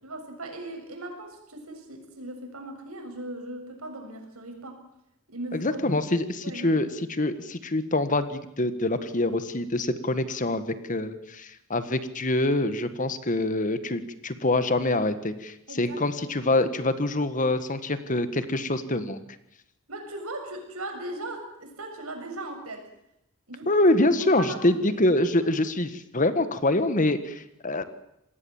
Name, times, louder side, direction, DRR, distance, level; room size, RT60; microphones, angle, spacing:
voice 1, 0.0-4.8 5.3-5.8 6.4-6.7 15.7-16.7 19.9-22.9 23.5-23.8 24.2-25.1, right 1 dB, 90° right, 4 dB, 7.1 m, -38 dB
voice 2, 5.5-19.2 23.7-27.8, left 2 dB, 35° left, 11 dB, 1.7 m, -25 dB
27.0 x 19.5 x 7.3 m, 0.82 s
head